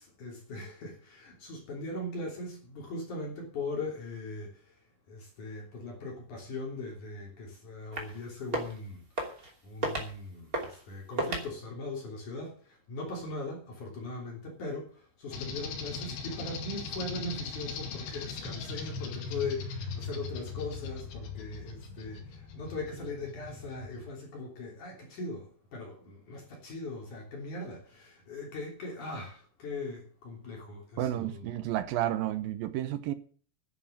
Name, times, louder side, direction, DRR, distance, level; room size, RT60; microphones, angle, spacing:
voice 1, 0.0-4.7 5.1-9.0 9.6-31.5, left 2 dB, 50° left, 4.5 m, -40 dB
sound 1, 7.9-8.2 8.4-8.8 9.2-9.5 9.8-10.1 10.5-10.8 11.2-11.5, right 1 dB, 25° right, 2.8 m, -33 dB
sound 2, 15.3-24.1, left 4 dB, 75° left, 4.1 m, -39 dB
voice 2, 31.0-33.1, right 13 dB, 70° right, 2.4 m, -31 dB
10.5 x 10.0 x 7.5 m
omnidirectional pair, 4.6 m